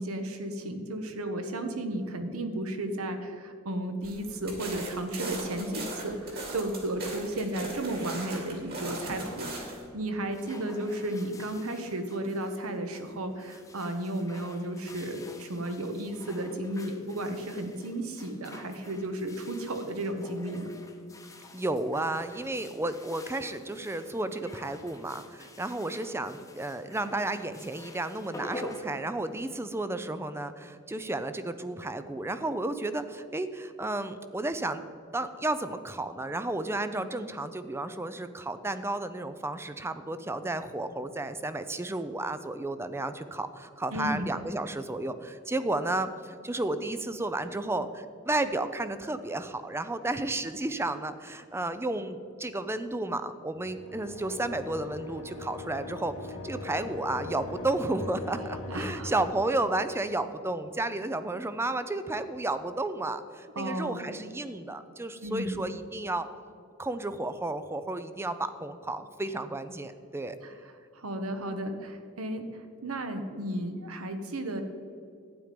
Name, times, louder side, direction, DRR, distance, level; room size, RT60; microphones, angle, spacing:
voice 1, 0.0-20.7 43.9-44.3 58.7-59.1 63.5-64.1 65.2-65.6 70.9-74.6, right 1 dB, 80° right, 7 dB, 1.2 m, -34 dB
sound 1, 4.0-9.8, right 2 dB, 45° right, 2.7 m, -38 dB
sound 2, 10.1-29.7, left 1 dB, 15° left, 0.9 m, -48 dB
voice 2, 21.5-34.8 35.1-56.1 56.4-66.3 66.8-70.4, right 2 dB, 10° right, 11 dB, 0.5 m, -32 dB
sound 3, 53.6-59.3, left 3 dB, 85° left, 2.8 m, -40 dB
12.0 x 9.4 x 5.2 m, 2.4 s
head